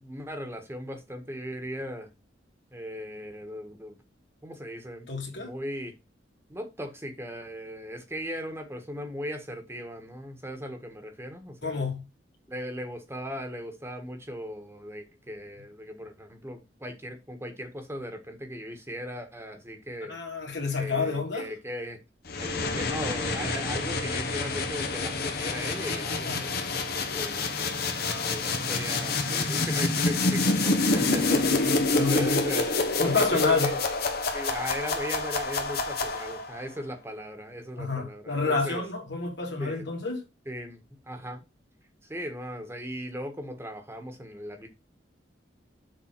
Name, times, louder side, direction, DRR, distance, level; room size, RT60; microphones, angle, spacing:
voice 1, 0.0-2.1 2.7-4.0 4.4-5.1 5.4-5.9 6.5-11.8 12.5-20.2 20.8-22.0 22.4-27.5 28.2-31.5 31.9-32.7 33.0-33.8 34.3-38.8 39.6-39.9 40.4-41.4 42.1-44.7, equal, 15° right, 1.5 m, -38 dB
voice 2, 5.1-5.5 11.6-12.1 20.1-21.5 26.3-26.5 28.0-28.6 30.9-32.4 33.0-33.7 37.8-40.2, left 4 dB, 75° left, 2.7 m, -29 dB
sound 1, 22.3-36.6, left 3 dB, 60° left, 1.4 m, -27 dB
7.3 x 4.0 x 6.0 m
head